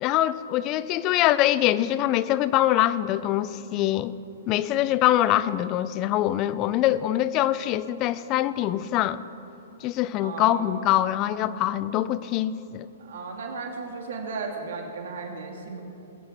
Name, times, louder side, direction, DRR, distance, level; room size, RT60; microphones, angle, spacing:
voice 1, 0.0-4.1 4.5-9.2 9.8-12.9, left 13 dB, 35° left, 16 dB, 0.6 m, -24 dB
voice 2, 10.2-10.7 13.0-15.8, right 4 dB, 65° right, 2 dB, 2.3 m, -35 dB
20.5 x 9.5 x 5.8 m, 2.9 s
hypercardioid pair, 120°, 0 cm